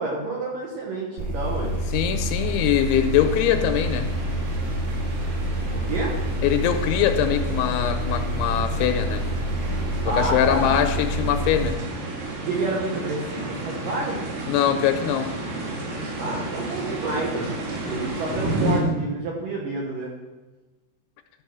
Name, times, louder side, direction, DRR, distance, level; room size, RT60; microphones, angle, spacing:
voice 1, 0.0-1.8 5.7-6.2 10.0-10.8 12.4-14.2 16.2-17.5 17.9-20.2, right 2 dB, 65° right, -2 dB, 2.2 m, -29 dB
sound 1, 1.2-11.7, equal, 50° right, 4.8 m, -28 dB
sound 2, 1.5-18.8, right 2 dB, 85° right, 4.6 m, -33 dB
voice 2, 1.9-4.1 6.4-9.2 10.1-11.8 14.5-15.3, left 10 dB, 90° left, 7 dB, 3.1 m, -22 dB
13.0 x 5.5 x 6.0 m, 1.2 s
omnidirectional pair, 5.4 m